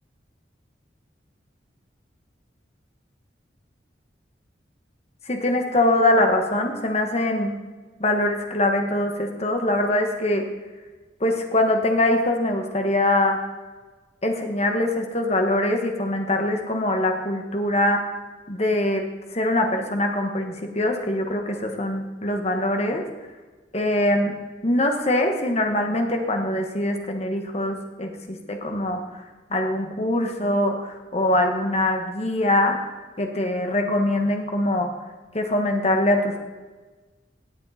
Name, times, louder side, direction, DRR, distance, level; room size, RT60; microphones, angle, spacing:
voice 1, 5.3-7.6 8.0-10.4 11.2-13.4 14.2-18.0 18.5-19.1 19.3-23.0 23.7-24.3 24.6-29.0 29.5-32.8 33.2-34.9 35.3-36.4, left 1 dB, 35° left, 4 dB, 1.5 m, -23 dB
17.5 x 7.7 x 4.2 m, 1.3 s
head